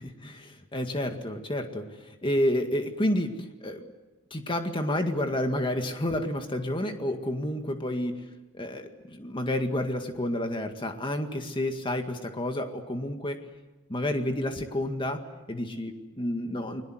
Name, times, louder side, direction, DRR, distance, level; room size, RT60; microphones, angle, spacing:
voice 1, 0.0-3.8 4.3-8.2 8.5-13.4 13.9-16.8, left 1 dB, 20° left, 6 dB, 2.0 m, -30 dB
30.0 x 21.5 x 7.8 m, 1.2 s
head